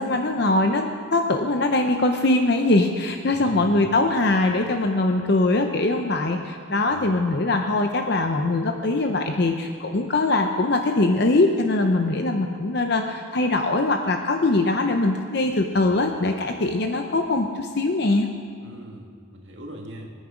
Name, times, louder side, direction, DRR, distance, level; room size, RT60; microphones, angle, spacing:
voice 1, 0.0-18.3, left 2 dB, 55° left, 5 dB, 0.7 m, -22 dB
voice 2, 3.3-3.9 6.9-7.0 18.6-20.1, right 1 dB, 65° right, 1 dB, 2.0 m, -40 dB
24.0 x 9.4 x 5.1 m, 2.2 s
head